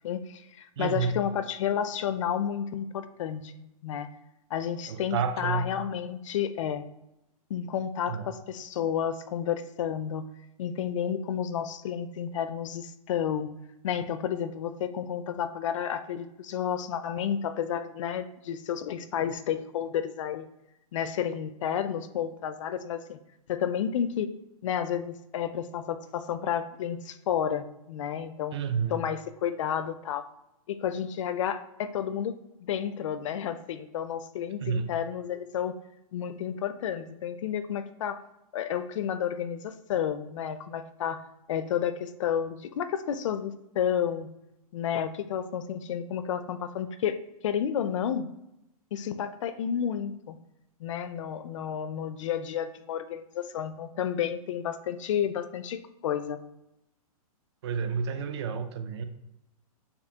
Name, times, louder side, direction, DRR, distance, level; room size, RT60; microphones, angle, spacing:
voice 1, 0.0-4.1 4.5-6.9 7.5-10.3 10.6-13.5 13.8-20.5 20.9-23.2 23.5-24.3 24.6-28.6 28.9-30.3 30.7-35.7 36.1-38.2 38.5-41.2 41.5-44.3 44.7-47.2 47.4-48.3 48.9-50.4 50.8-56.4, left 9 dB, 55° left, 11 dB, 0.4 m, -31 dB
voice 2, 0.8-1.1 4.9-5.7 8.1-8.3 28.5-29.0 34.6-34.9 57.6-59.0, right 6 dB, 45° right, 9 dB, 0.5 m, -30 dB
6.6 x 2.6 x 2.8 m, 0.89 s
hypercardioid pair, 160°, 19 cm